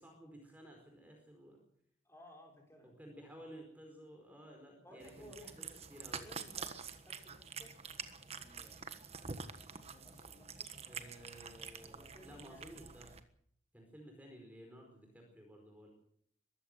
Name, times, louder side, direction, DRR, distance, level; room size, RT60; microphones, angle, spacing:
voice 1, 0.0-1.6 2.8-5.5 5.9-6.3 10.9-13.1 13.7-15.9, equal, 10° right, 2 dB, 4.6 m, -54 dB
voice 2, 2.0-3.0 4.8-6.8 7.1-7.8 8.3-9.0 9.7-11.0 11.8-12.8, equal, 15° left, 0 dB, 5.5 m, -59 dB
Cat, 5.0-13.2, right 5 dB, 30° right, 1.4 m, -47 dB
22.5 x 15.0 x 7.9 m, 0.67 s
head